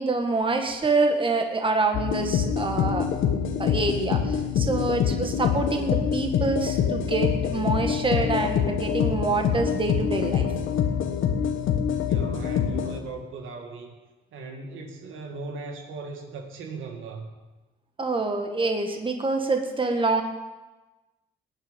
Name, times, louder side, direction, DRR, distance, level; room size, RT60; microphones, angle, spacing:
voice 1, 0.0-3.1 3.6-10.5 18.0-20.2, right 3 dB, 25° right, 4 dB, 1.7 m, -26 dB
sound 1, 1.9-13.0, left 8 dB, 85° left, 1.4 m, -25 dB
voice 2, 12.1-14.0 14.3-17.3, right 3 dB, 80° right, 3 dB, 2.1 m, -38 dB
19.0 x 9.1 x 5.3 m, 1.1 s
cardioid pair, 90°, 20 cm